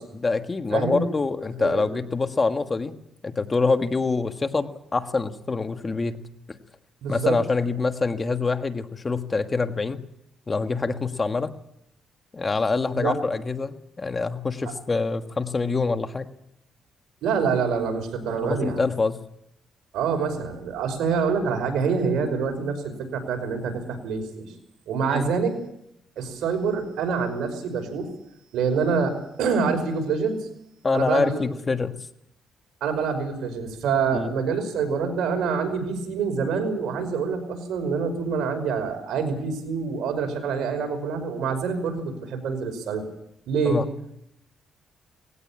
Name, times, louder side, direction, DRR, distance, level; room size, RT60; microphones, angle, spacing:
voice 1, 0.1-2.9 3.2-6.2 7.1-10.0 10.5-11.5 12.3-16.3 18.4-19.2 25.0-25.3 30.8-31.9 34.1-34.3 43.6-43.9, left 4 dB, 30° left, 8 dB, 1.5 m, -25 dB
voice 2, 0.7-1.0 1.6-2.0 7.0-7.3 12.9-13.1 17.2-18.8 19.9-24.5 24.9-25.6 26.2-28.1 28.5-30.5 30.9-31.4 32.8-43.0 43.5-43.8, right 5 dB, 80° right, 5 dB, 5.4 m, -26 dB
19.5 x 17.0 x 8.7 m, 0.78 s
cardioid pair, 90°, 0 cm